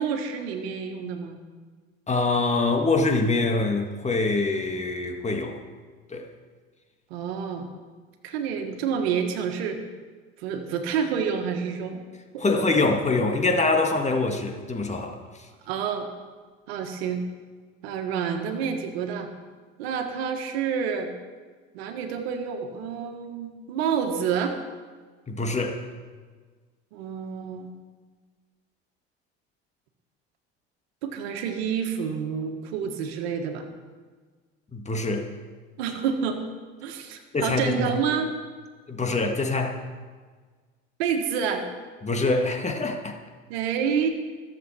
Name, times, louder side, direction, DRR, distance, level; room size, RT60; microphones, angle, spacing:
voice 1, 0.0-1.4 7.1-7.7 8.2-9.8 10.4-12.1 12.3-12.7 15.6-16.1 16.7-17.2 17.8-19.3 19.8-21.1 21.7-24.6 26.9-27.7 31.0-33.6 35.8-36.5 36.8-38.3 41.0-41.6 43.5-44.1, right 7 dB, 85° right, 5 dB, 1.6 m, -28 dB
voice 2, 2.1-5.6 6.1-6.3 12.4-15.2 25.3-25.8 34.7-35.3 37.3-37.9 38.9-39.8 42.0-43.2, left 3 dB, 20° left, 4 dB, 1.8 m, -24 dB
21.0 x 7.6 x 4.4 m, 1.5 s
supercardioid pair, 85°, 31 cm